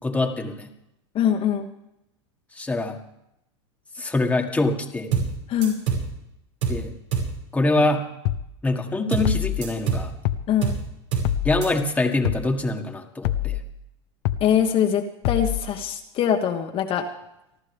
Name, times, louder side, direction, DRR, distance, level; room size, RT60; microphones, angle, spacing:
voice 1, 0.0-0.7 2.5-3.0 4.0-5.1 6.7-6.9 7.5-8.1 8.6-10.1 11.4-13.6, left 2 dB, 10° left, 3 dB, 1.8 m, -24 dB
voice 2, 1.1-1.7 5.5-5.8 10.5-10.8 14.4-17.1, left 9 dB, 40° left, 2 dB, 1.4 m, -23 dB
sound 1, 5.1-5.4 5.6-6.1 6.6-6.9 7.1-7.4 9.1-9.4 9.6-10.1 10.6-10.9 11.1-11.4 11.6-11.7, right 5 dB, 90° right, 5.7 m, -25 dB
sound 2, 8.3-8.5 9.2-9.6 10.3-10.5 11.2-11.6 12.3-12.5 13.2-13.6 14.3-14.5 15.2-15.6, left 13 dB, 60° left, 0.9 m, -25 dB
30.0 x 11.5 x 3.5 m, 0.83 s
hypercardioid pair, 115°, 15 cm